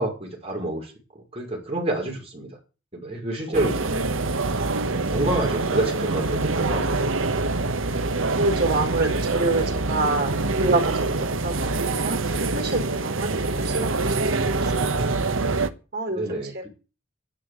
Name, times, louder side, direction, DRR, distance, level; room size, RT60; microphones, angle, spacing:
voice 1, 0.0-2.6 2.9-3.9 4.9-6.9 16.1-16.7, right 1 dB, 30° right, -1 dB, 5.6 m, -28 dB
voice 2, 3.5-4.3 8.3-12.2 12.5-14.0 14.3-15.3 15.9-16.7, right 2 dB, 50° right, 3 dB, 4.5 m, -27 dB
sound 1, 3.5-15.7, right 3 dB, 80° right, 1.3 m, -25 dB
11.5 x 10.5 x 8.7 m, 0.34 s
head